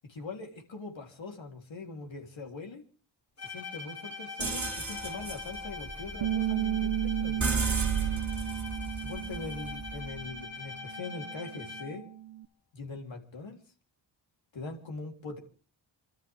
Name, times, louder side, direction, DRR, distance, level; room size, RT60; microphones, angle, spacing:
voice 1, 0.1-2.8 3.4-7.5 8.9-12.1 12.7-13.6 14.5-15.4, left 3 dB, 75° left, 2 dB, 3.7 m, -42 dB
Bowed string instrument, 3.4-12.1, left 4 dB, 35° left, 3.7 m, -43 dB
sound 1, 4.4-10.2, right 4 dB, 40° right, 3.9 m, -34 dB
Bass guitar, 6.2-10.5 10.8-12.4, right 13 dB, 75° right, 0.7 m, -34 dB
29.0 x 13.0 x 3.6 m, 0.39 s
wide cardioid pair, 100°, 46 cm